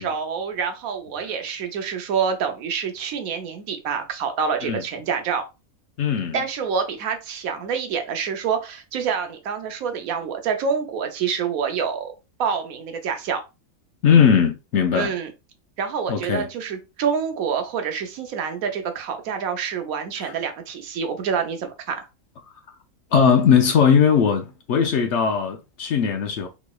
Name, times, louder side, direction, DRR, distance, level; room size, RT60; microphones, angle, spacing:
voice 1, 0.0-5.4 6.3-12.1 12.4-13.4 14.9-15.3 15.8-22.1, right 6 dB, 85° right, 1.1 m, -27 dB
voice 2, 6.0-6.4 14.0-15.1 16.1-16.5 20.2-20.3 23.1-26.5, left 7 dB, 65° left, 0.8 m, -19 dB
3.3 x 3.0 x 2.3 m
omnidirectional pair, 1.4 m